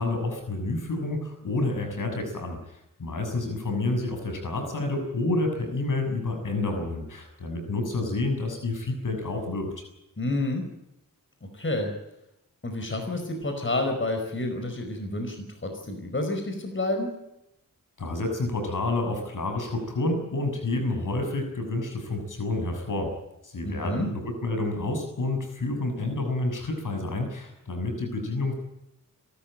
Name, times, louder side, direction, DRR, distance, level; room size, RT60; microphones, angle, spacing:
voice 1, 0.0-9.8 18.0-23.1 23.4-28.5, left 2 dB, 65° left, 4 dB, 6.9 m, -29 dB
voice 2, 10.2-10.6 11.5-11.9 12.6-15.4 15.6-17.1 23.6-24.1, left 2 dB, 35° left, 4 dB, 5.1 m, -29 dB
27.0 x 13.5 x 9.0 m, 0.86 s
cardioid pair, 50°, 33 cm